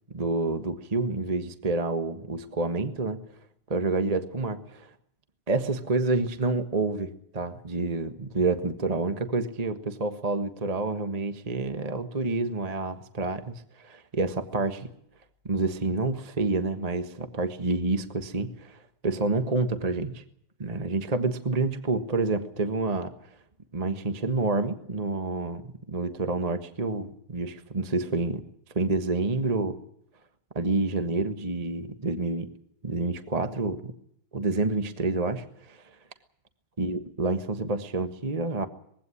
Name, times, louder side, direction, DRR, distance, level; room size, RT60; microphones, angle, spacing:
voice 1, 0.1-3.2 3.7-4.9 5.5-14.9 15.4-20.2 20.6-23.1 23.7-28.4 28.7-29.8 30.5-32.5 32.8-33.9 34.3-35.8 36.8-38.7, right 3 dB, 20° right, 8 dB, 1.2 m, -28 dB
21.5 x 16.5 x 9.9 m, 0.70 s
omnidirectional pair, 2.4 m